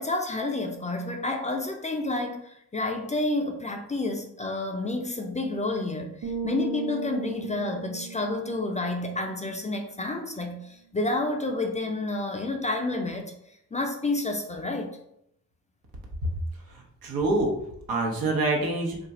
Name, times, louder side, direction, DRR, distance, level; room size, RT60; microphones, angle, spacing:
voice 1, 0.0-13.3 13.7-15.0, left 2 dB, 20° left, 3 dB, 0.4 m, -30 dB
sound 1, 6.2-9.9, right 4 dB, 45° right, 0.8 m, -37 dB
voice 2, 16.7-17.5 17.9-19.0, right 2 dB, 75° right, 0 dB, 0.9 m, -26 dB
2.4 x 2.4 x 4.0 m, 0.76 s
cardioid pair, 70°, 36 cm